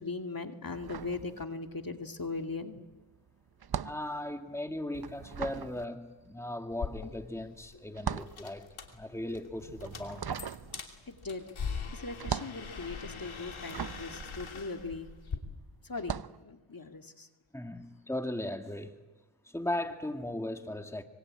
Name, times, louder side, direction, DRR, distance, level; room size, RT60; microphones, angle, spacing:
voice 1, 0.0-2.8 11.1-15.1 15.8-17.3, left 3 dB, 45° left, 2.4 m, -39 dB
sound 1, 0.7-1.9 2.2-15.4 15.9-16.4, right 8 dB, 50° right, 0.8 m, -40 dB
voice 2, 3.8-10.4 17.5-18.9 19.5-21.0, left 1 dB, 5° left, 2.1 m, -37 dB
sound 2, 6.7-15.4, left 5 dB, 90° left, 3.0 m, -42 dB
25.0 x 24.0 x 8.8 m
cardioid pair, 45°, 48 cm